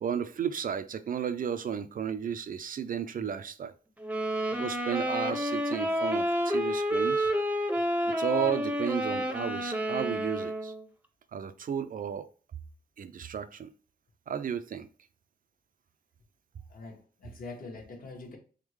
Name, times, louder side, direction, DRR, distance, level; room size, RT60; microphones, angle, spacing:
voice 1, 0.0-3.7 4.5-7.3 8.0-10.7 11.3-12.3 13.0-13.7 14.3-14.9, right 8 dB, 55° right, 0.4 m, -33 dB
sound 1, 4.0-10.8, equal, 10° right, 0.6 m, -29 dB
voice 2, 16.7-18.4, left 3 dB, 55° left, 1.2 m, -44 dB
3.9 x 3.6 x 3.1 m
wide cardioid pair, 150°, 17 cm